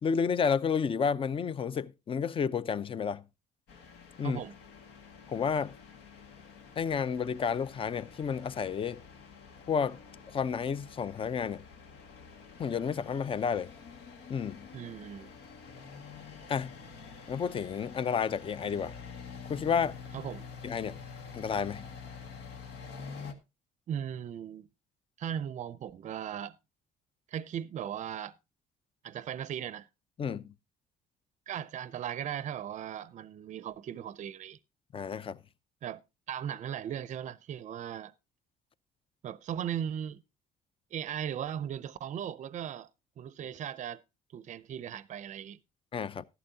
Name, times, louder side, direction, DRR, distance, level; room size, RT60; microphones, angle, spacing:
voice 1, 0.0-3.2 4.2-4.4 5.3-5.7 6.8-9.0 9.7-10.0 10.3-11.7 12.6-13.7 14.3-14.7 16.5-16.7 17.3-18.9 19.5-20.0 20.6-21.0 21.3-21.9 30.2-30.4 34.9-35.4 45.9-46.2, left 6 dB, 30° left, 0.6 m, -31 dB
sound 1, 3.7-23.3, left 5 dB, 80° left, 1.8 m, -48 dB
voice 2, 4.2-4.5 14.7-15.3 20.1-20.5 23.9-24.7 25.2-26.6 27.3-28.4 29.0-29.9 31.5-34.6 35.8-36.0 36.3-38.1 39.2-40.2 40.9-42.9 43.2-44.0 44.3-45.6, right 9 dB, 45° right, 0.5 m, -37 dB
13.5 x 11.0 x 2.8 m
cardioid pair, 110°, 17 cm